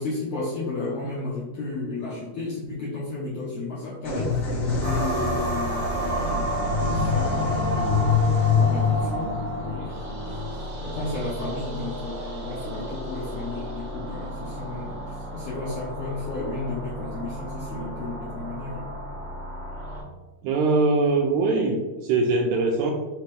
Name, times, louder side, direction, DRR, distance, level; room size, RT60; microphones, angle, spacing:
voice 1, 0.0-8.2 8.6-10.0 10.8-19.0, left 3 dB, 75° left, -6 dB, 1.4 m, -33 dB
sound 1, 4.0-11.6, left 5 dB, 50° left, 1.9 m, -26 dB
sound 2, 4.8-20.0, right 1 dB, 60° right, 0.7 m, -32 dB
voice 2, 20.4-22.9, right 3 dB, 80° right, 1 dB, 1.7 m, -22 dB
5.0 x 3.0 x 3.2 m, 1.2 s
omnidirectional pair, 3.7 m